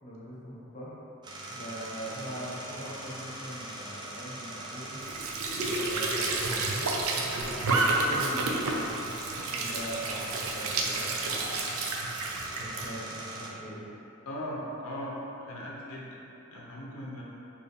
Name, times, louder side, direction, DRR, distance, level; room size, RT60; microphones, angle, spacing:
voice 1, 0.0-1.0 1.5-5.0 5.6-9.1 9.4-11.6 12.6-13.8, equal, 35° left, -7 dB, 0.8 m, -41 dB
sound 1, 1.2-13.5, right 2 dB, 20° right, 0.4 m, -41 dB
Squeak / Sink (filling or washing) / Trickle dribble, 5.0-12.9, right 2 dB, 80° right, 0.5 m, -30 dB
voice 2, 14.3-15.2 15.4-16.2 16.5-17.2, equal, 75° left, -4 dB, 0.6 m, -38 dB
4.6 x 2.7 x 3.3 m, 2.9 s
head